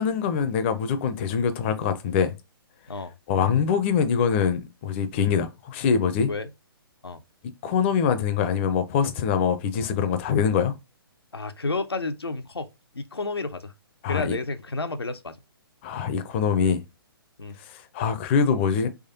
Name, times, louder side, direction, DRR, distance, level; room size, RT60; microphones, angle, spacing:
voice 1, 0.0-2.3 3.3-6.3 7.6-10.8 14.0-14.4 15.8-16.8 17.7-18.9, left 6 dB, 30° left, 0.4 m, -24 dB
voice 2, 11.3-12.7 12.9-13.7 14.1-15.4 17.4-17.6, left 3 dB, 90° left, 0.5 m, -31 dB
3.5 x 3.2 x 2.7 m
figure-of-eight pair, 130°, 13 cm